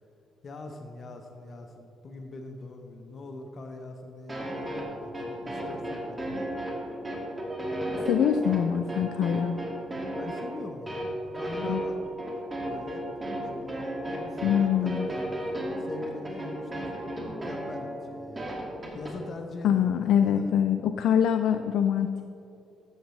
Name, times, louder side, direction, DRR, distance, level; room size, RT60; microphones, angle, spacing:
voice 1, 0.4-6.5 10.1-11.1 11.3-12.0 12.6-13.1 13.4-17.0 17.3-18.5 18.9-20.5, left 2 dB, 50° left, 4 dB, 0.9 m, -42 dB
sound 1, 4.3-19.1, right 1 dB, 25° right, 2.1 m, -34 dB
voice 2, 8.0-9.6 11.7-11.8 14.4-15.1 19.6-22.1, left 9 dB, 80° left, 8 dB, 0.3 m, -24 dB
13.5 x 8.0 x 3.2 m, 2.6 s
cardioid pair, 90°, 0 cm